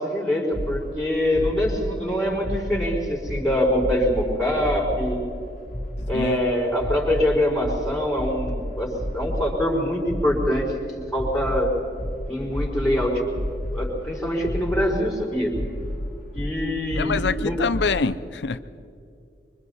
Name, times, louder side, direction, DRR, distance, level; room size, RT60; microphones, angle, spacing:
voice 1, 0.0-5.2 6.1-8.9 9.1-11.7 12.3-13.3 13.7-15.5 16.3-17.6, left 1 dB, ahead, -6 dB, 4.7 m, -24 dB
sound 1, 0.5-18.0, equal, 50° left, 2.3 m, -32 dB
voice 2, 17.0-18.6, left 4 dB, 75° left, 13 dB, 0.6 m, -25 dB
25.5 x 24.5 x 4.2 m, 2.5 s
head